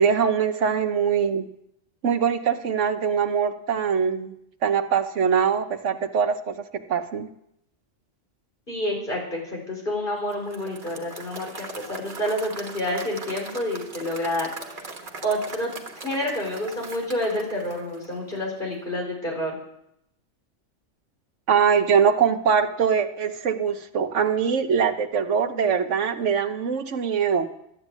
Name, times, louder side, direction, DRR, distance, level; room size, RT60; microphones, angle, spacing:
voice 1, 0.0-1.5 2.0-4.3 4.6-7.3 21.5-27.5, right 7 dB, 75° right, 8 dB, 1.3 m, -22 dB
voice 2, 8.7-14.9 15.2-19.6, left 1 dB, 45° left, 0 dB, 4.9 m, -29 dB
Applause / Crowd, 10.3-18.5, right 3 dB, 45° right, 1.5 m, -40 dB
13.5 x 9.8 x 8.3 m, 0.79 s
omnidirectional pair, 1.2 m